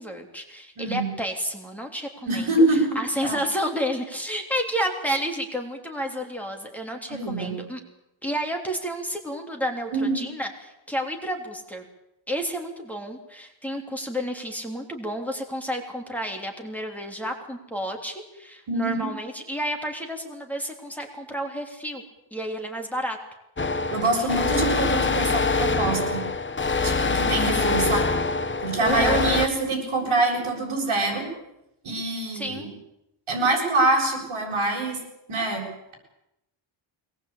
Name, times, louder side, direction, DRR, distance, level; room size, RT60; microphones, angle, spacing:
voice 1, 0.0-7.8 8.2-11.8 12.3-22.0 22.3-23.2 24.0-24.4 27.4-27.7 28.8-29.3 32.3-32.7, equal, 5° left, 1 dB, 3.3 m, -31 dB
voice 2, 0.8-1.1 2.3-3.4 7.1-7.5 9.9-10.2 18.7-19.1 23.9-26.2 26.8-28.2 28.6-31.2 31.8-32.7 33.3-35.0 35.3-35.6, right 2 dB, 75° right, 0 dB, 7.3 m, -25 dB
sound 1, 23.6-29.5, left 4 dB, 25° left, 0.9 m, -24 dB
22.0 x 19.5 x 8.6 m, 0.85 s
wide cardioid pair, 150°, 49 cm